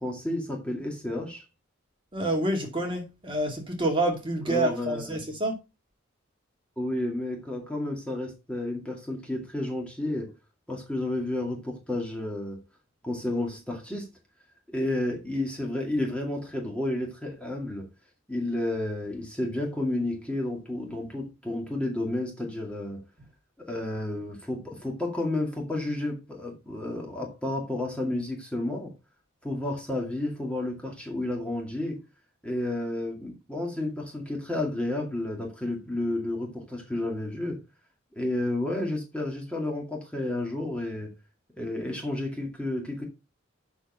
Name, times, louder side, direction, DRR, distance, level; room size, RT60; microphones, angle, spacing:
voice 1, 0.0-1.4 4.5-5.2 6.8-10.3 10.7-12.6 13.0-14.1 14.7-17.9 18.3-23.0 23.6-28.9 29.4-32.0 32.4-37.6 38.2-41.1 41.6-43.0, left 1 dB, 5° left, 2.2 m, -31 dB
voice 2, 2.1-5.6, right 1 dB, 25° right, 2.4 m, -28 dB
7.3 x 6.5 x 5.5 m
head